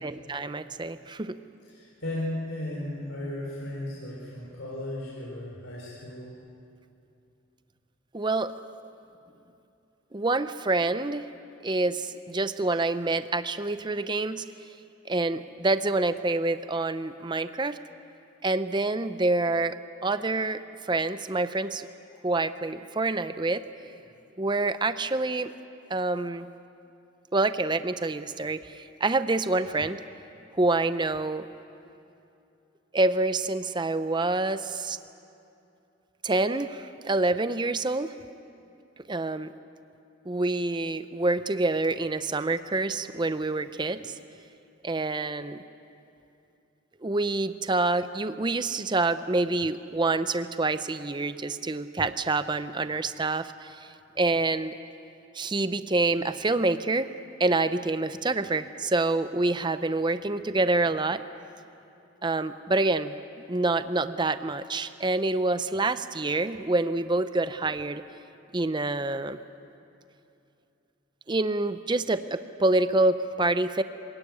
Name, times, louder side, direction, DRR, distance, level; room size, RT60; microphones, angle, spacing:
voice 1, 0.0-1.4 8.1-8.5 10.1-11.3 11.6-14.5 15.1-17.8 18.4-19.8 20.0-21.9 22.2-23.6 24.4-25.5 25.9-26.5 27.3-30.0 30.5-31.5 32.9-35.0 36.2-38.1 39.1-39.5 40.3-44.2 44.8-45.6 47.0-54.8 55.3-57.1 57.4-61.2 62.2-63.1 63.5-68.0 68.5-69.4 71.3-73.8, right 2 dB, 20° right, 12 dB, 0.5 m, -27 dB
voice 2, 1.7-6.3, left 1 dB, 65° left, -5 dB, 4.2 m, -35 dB
26.5 x 17.0 x 9.5 m, 2.7 s
head